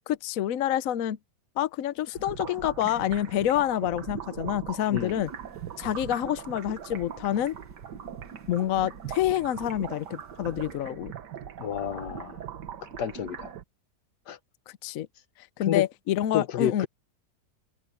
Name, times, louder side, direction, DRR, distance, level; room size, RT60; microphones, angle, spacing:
voice 1, 0.1-1.2 1.6-5.3 5.8-7.6 8.5-11.1 14.7-15.1 15.6-16.9, left 12 dB, 65° left, 1.0 m, -27 dB
sound 1, 2.1-13.6, right 8 dB, 85° right, 1.8 m, -40 dB
sound 2, 5.1-10.8, equal, 10° left, 4.7 m, -57 dB
voice 2, 11.6-12.4 12.8-13.5 14.3-14.4 15.6-15.9 16.3-16.9, left 9 dB, 80° left, 1.6 m, -30 dB
omnidirectional pair, 1.8 m